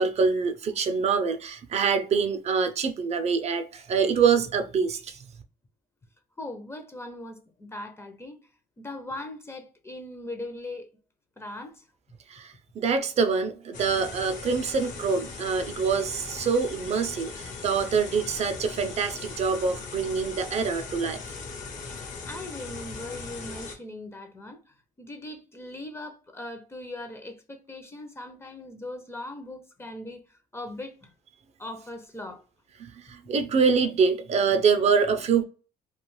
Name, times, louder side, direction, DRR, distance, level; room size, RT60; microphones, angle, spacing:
voice 1, 0.0-5.2 12.3-21.2 32.8-35.4, right 5 dB, 40° right, 0.5 m, -25 dB
voice 2, 6.4-8.4 8.8-10.9 11.4-11.8 21.9-24.6 25.0-30.2 30.5-31.1 31.6-32.4, left 1 dB, 15° left, 0.5 m, -39 dB
sound 1, 13.7-23.8, left 4 dB, 50° left, 0.8 m, -39 dB
2.4 x 2.2 x 3.0 m
cardioid pair, 110°, 17 cm